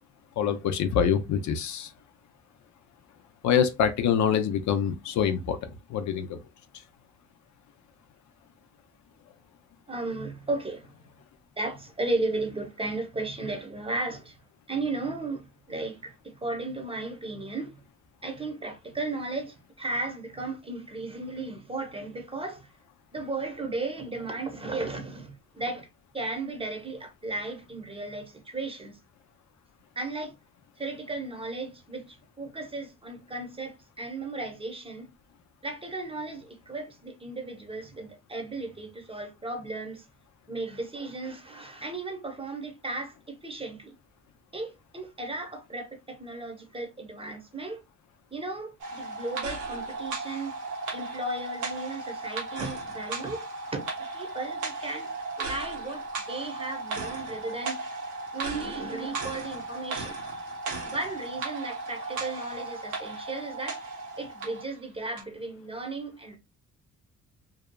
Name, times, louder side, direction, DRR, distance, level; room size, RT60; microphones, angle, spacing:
voice 1, 0.4-1.9 3.4-6.4, left 8 dB, 70° left, 0.5 m, -25 dB
voice 2, 9.9-10.9 11.6-14.4 14.7-17.8 18.2-22.7 23.1-25.9 26.1-29.0 30.0-30.4 30.8-35.1 35.6-40.1 40.5-44.0 44.5-47.8 48.3-50.6 50.9-53.5 53.7-53.9 54.1-55.1 55.4-57.8 58.3-60.1 60.8-63.8 64.2-66.4, right 2 dB, 20° right, 0.8 m, -35 dB
sound 1, 48.8-64.7 65.2-65.3, right 3 dB, 85° right, 1.1 m, -36 dB
2.7 x 2.3 x 2.2 m
cardioid pair, 90°, 30 cm